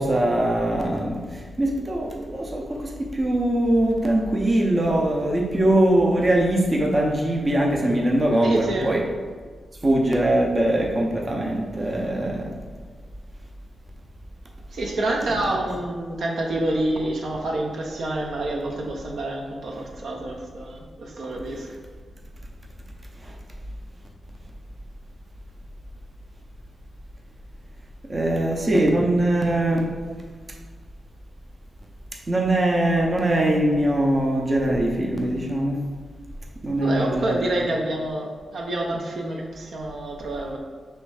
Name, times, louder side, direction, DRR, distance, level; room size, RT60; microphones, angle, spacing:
voice 1, 0.0-9.0 9.8-12.5 15.4-15.6 23.2-23.3 28.1-30.0 32.3-35.8 36.6-37.5, right 1 dB, 25° right, 0 dB, 0.5 m, -22 dB
voice 2, 8.4-8.9 14.7-21.7 36.8-40.6, right 1 dB, 75° right, 0 dB, 0.6 m, -27 dB
3.2 x 3.1 x 4.7 m, 1.6 s
wide cardioid pair, 135°, 0 cm